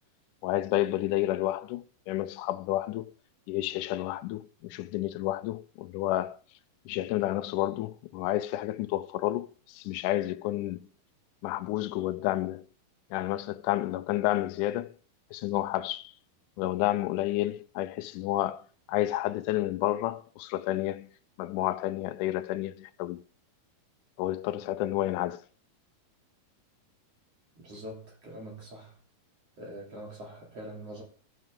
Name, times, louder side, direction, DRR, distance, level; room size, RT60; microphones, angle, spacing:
voice 1, 0.4-3.1 3.5-6.4 6.9-10.9 11.4-12.7 13.1-14.9 15.3-16.1 16.6-21.1 21.4-23.2 24.2-25.4, left 15 dB, 90° left, 1.8 m, -30 dB
voice 2, 27.6-29.0 29.6-31.0, right 1 dB, 40° right, 4.0 m, -43 dB
13.5 x 9.4 x 3.8 m
omnidirectional pair, 4.4 m